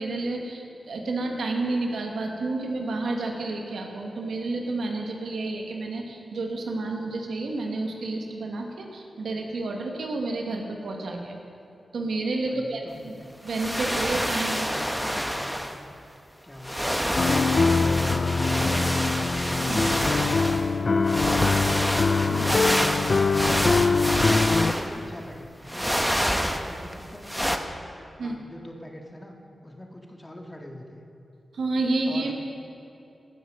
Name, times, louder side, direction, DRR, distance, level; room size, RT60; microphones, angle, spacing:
voice 1, 0.0-11.4 11.9-13.1 13.4-14.7 15.0-15.2 19.7-19.9 22.3-22.5 28.2-28.4 31.5-32.3, right 2 dB, 85° right, 1 dB, 1.4 m, -30 dB
voice 2, 12.5-13.3 13.9-15.9 16.4-16.8 19.9-21.9 22.3-27.7 28.2-29.4 29.6-31.0 32.1-32.3, left 1 dB, 25° left, 1 dB, 1.9 m, -43 dB
sound 1, 13.5-15.8 16.6-20.7 21.1-25.1 25.7-26.9 27.2-27.6, equal, ahead, 1.0 m, -27 dB
sound 2, 17.2-24.7, left 4 dB, 55° left, 0.4 m, -23 dB
16.5 x 6.8 x 6.4 m, 2.7 s
cardioid pair, 45°, 0 cm